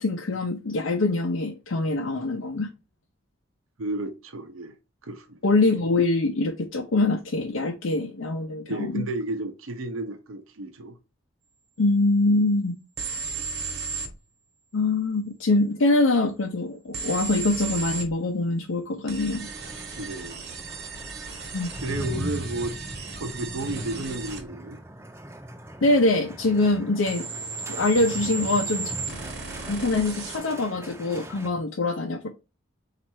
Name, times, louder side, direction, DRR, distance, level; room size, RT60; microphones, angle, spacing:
voice 1, 0.0-2.7 5.4-9.0 11.8-12.8 14.7-19.5 21.5-21.7 25.8-27.3 27.7-29.0 29.7-32.3, left 2 dB, 80° left, 0.6 m, -24 dB
voice 2, 3.8-4.7 5.0-5.4 8.7-11.0 20.0-20.4 21.8-22.8 23.1-24.8, right 2 dB, 90° right, 0.7 m, -32 dB
sound 1, 13.0-14.1 16.9-18.1 19.1-24.4 27.1-30.4, right 5 dB, 50° right, 1.0 m, -35 dB
sound 2, 19.2-31.5, right 1 dB, 15° right, 0.5 m, -39 dB
4.3 x 2.5 x 4.4 m
head